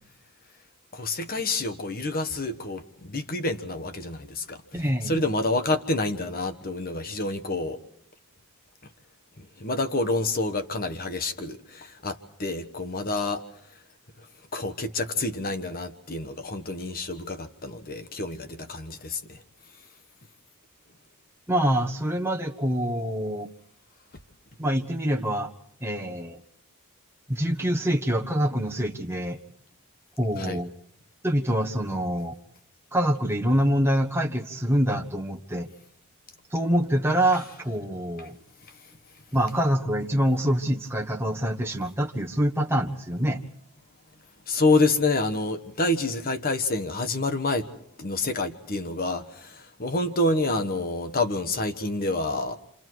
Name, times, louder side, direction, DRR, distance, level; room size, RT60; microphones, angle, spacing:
voice 1, 0.9-7.8 9.4-13.4 13.7-13.8 14.2-19.4 19.7-19.8 30.4-30.6 38.2-38.3 38.6-39.0 44.5-47.7 48.0-52.6, left 2 dB, 40° left, 8 dB, 1.3 m, -28 dB
voice 2, 4.7-5.2 21.5-23.5 24.6-25.5 25.8-26.4 27.3-29.4 30.2-30.7 31.2-32.3 32.9-35.7 36.5-38.4 39.3-43.4, equal, 10° right, 2 dB, 1.3 m, -25 dB
30.0 x 27.0 x 4.7 m, 0.66 s
head